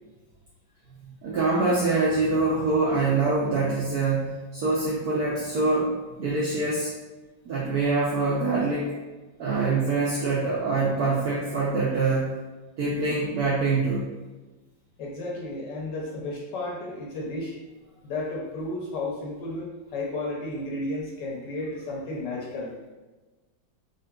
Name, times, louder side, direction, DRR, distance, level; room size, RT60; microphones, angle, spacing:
voice 1, 1.0-5.9 6.2-6.9 7.5-8.9 9.4-12.3 12.8-14.1, right 3 dB, 75° right, -6 dB, 0.8 m, -24 dB
voice 2, 15.0-17.5 18.0-22.7, left 2 dB, 70° left, -3 dB, 1.1 m, -33 dB
3.7 x 2.6 x 2.2 m, 1.2 s
omnidirectional pair, 2.2 m